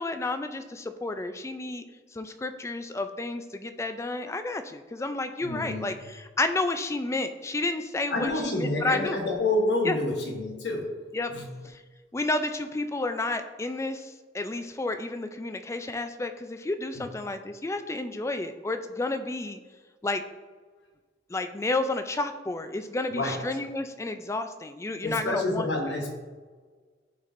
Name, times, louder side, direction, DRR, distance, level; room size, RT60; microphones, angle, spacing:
voice 1, 0.0-1.9 2.1-9.2 9.8-10.0 11.1-11.3 11.6-11.8 12.1-19.6 20.0-20.2 21.3-25.7, left 2 dB, 15° left, 8 dB, 0.3 m, -31 dB
voice 2, 5.4-5.9 8.1-10.9 11.3-11.5 16.9-17.0 23.1-23.4 25.0-26.1, left 2 dB, 80° left, 2 dB, 1.1 m, -28 dB
11.0 x 4.2 x 2.6 m, 1.4 s
head